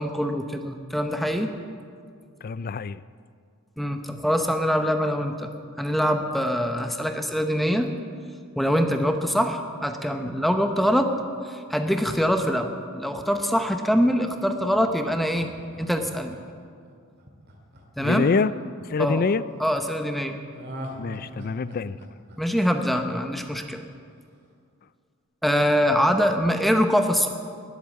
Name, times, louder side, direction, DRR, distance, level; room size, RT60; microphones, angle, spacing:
voice 1, 0.0-1.5 3.8-5.5 5.8-7.9 8.6-11.1 11.4-15.5 15.8-16.4 18.0-18.2 19.0-19.2 19.6-20.4 22.4-23.8 25.4-27.3, equal, ahead, 5 dB, 0.9 m, -24 dB
voice 2, 2.4-3.0 18.0-18.5 18.9-19.4 21.0-22.0, left 4 dB, 45° left, 17 dB, 0.4 m, -25 dB
Laughter, 14.7-18.9 20.5-23.5 23.8-23.9, equal, 50° right, 2.2 m, -42 dB
20.0 x 8.3 x 7.5 m, 2.2 s
head